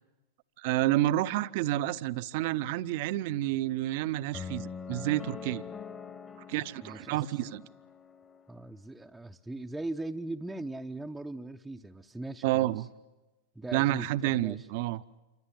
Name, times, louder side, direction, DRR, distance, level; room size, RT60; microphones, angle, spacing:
voice 1, 0.6-5.6 6.5-7.6 12.4-12.9 13.7-15.0, right 15 dB, 50° right, 15 dB, 0.8 m, -29 dB
sound 1, 4.3-8.5, left 6 dB, 20° left, 1.4 m, -43 dB
voice 2, 6.8-7.5 8.5-12.9 13.5-14.7, right 2 dB, 5° right, 2 dB, 0.8 m, -40 dB
28.5 x 25.0 x 7.8 m, 1.1 s
figure-of-eight pair, 90°, 0 cm